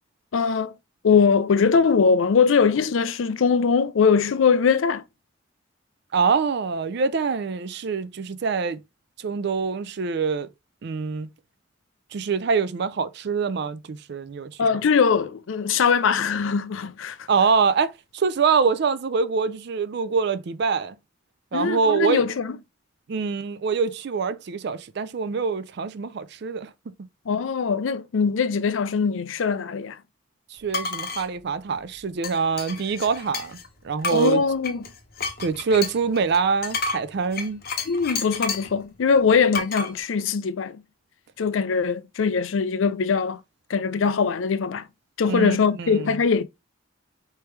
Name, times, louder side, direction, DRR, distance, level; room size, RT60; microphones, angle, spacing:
voice 1, 0.3-0.7 1.0-5.0 14.6-17.3 21.5-22.6 27.3-30.0 34.1-34.9 37.9-40.8 41.4-43.4 43.7-44.9 45.2-46.4, left 5 dB, 75° left, 0.4 m, -21 dB
voice 2, 6.1-8.8 9.2-10.5 10.8-11.3 12.1-14.5 17.3-21.0 21.5-22.2 23.1-26.7 30.5-33.6 33.8-34.4 35.4-37.6 45.3-46.1, right 5 dB, 55° right, 0.4 m, -24 dB
sound 1, 30.7-31.3 32.2-33.7 34.0-38.7 39.5-39.9, left 4 dB, 50° left, 0.8 m, -30 dB
4.5 x 3.3 x 3.1 m
head